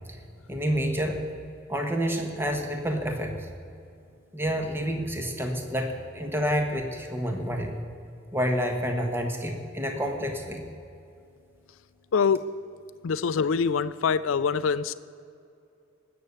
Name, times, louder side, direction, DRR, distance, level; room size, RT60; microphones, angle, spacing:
voice 1, 0.5-1.2 1.7-3.5 4.3-7.8 8.3-10.7, equal, 10° right, 3 dB, 1.4 m, -28 dB
voice 2, 12.1-12.5 13.0-14.9, left 6 dB, 90° left, 14 dB, 0.4 m, -24 dB
19.0 x 6.8 x 8.2 m, 2.5 s
head